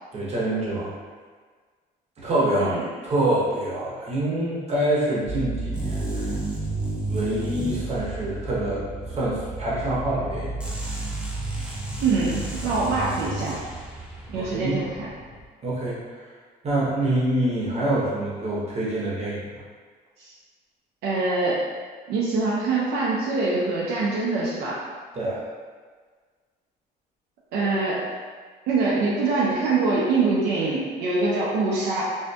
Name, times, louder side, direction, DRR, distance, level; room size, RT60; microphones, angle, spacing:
voice 1, 0.1-1.0 2.2-2.7 3.0-6.3 7.1-10.7 14.3-14.8 15.6-16.0 16.6-19.4 25.1-25.4, right 1 dB, 40° right, -7 dB, 0.9 m, -26 dB
sound 1, 5.2-15.5, right 2 dB, 45° left, 0.6 m, -34 dB
sound 2, 5.7-8.6 10.6-14.0, right 2 dB, 5° right, 0.4 m, -33 dB
voice 2, 12.0-13.6 14.3-15.1 20.2-20.3 21.0-21.6 22.1-24.8 27.5-28.1 28.7-32.0, right 3 dB, 75° right, -6 dB, 0.5 m, -24 dB
2.6 x 2.4 x 2.3 m, 1.5 s
cardioid pair, 110°, 17 cm